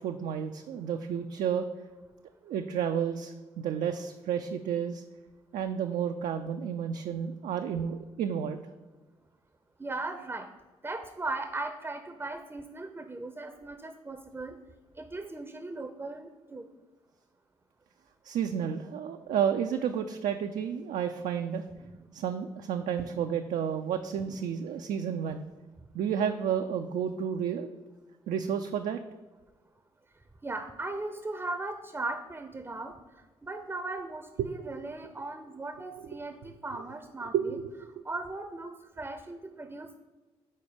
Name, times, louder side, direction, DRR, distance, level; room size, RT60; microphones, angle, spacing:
voice 1, 0.0-1.7 2.4-5.0 5.5-8.6 18.2-21.6 22.1-25.5 25.9-27.7 28.3-29.0 34.6-34.7 37.3-37.7, right 8 dB, 65° right, 6 dB, 0.4 m, -31 dB
voice 2, 9.8-10.5 10.8-14.6 15.0-16.7 21.8-22.0 23.0-23.3 24.2-24.4 30.4-33.0 33.4-37.6 38.0-40.0, right 2 dB, 15° right, 8 dB, 0.6 m, -38 dB
5.4 x 4.1 x 5.0 m, 1.2 s
hypercardioid pair, 45°, 14 cm